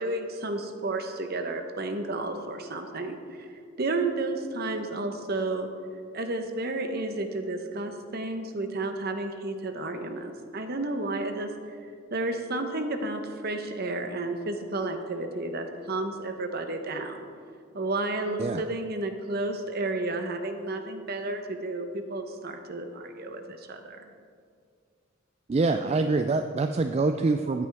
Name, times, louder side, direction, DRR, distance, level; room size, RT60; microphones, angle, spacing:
voice 1, 0.0-3.5 3.8-5.7 6.1-11.5 12.1-17.2 17.7-24.0, right 2 dB, 50° right, 6 dB, 0.9 m, -32 dB
voice 2, 25.5-27.7, right 3 dB, 30° right, 7 dB, 0.3 m, -25 dB
14.0 x 9.5 x 3.5 m, 2.2 s
head